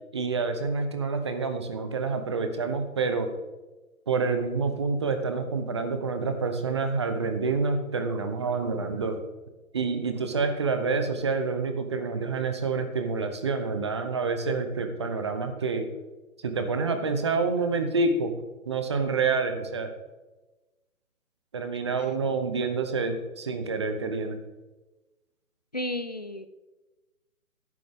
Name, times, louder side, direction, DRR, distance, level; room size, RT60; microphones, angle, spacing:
voice 1, 0.1-3.3 4.1-9.2 9.7-15.9 16.4-18.3 18.7-19.9 21.5-24.4, right 4 dB, 20° right, 7 dB, 0.7 m, -28 dB
voice 2, 25.7-26.5, left 1 dB, 30° left, 11 dB, 0.4 m, -32 dB
13.5 x 11.0 x 3.6 m, 1.1 s
figure-of-eight pair, 150°, 42 cm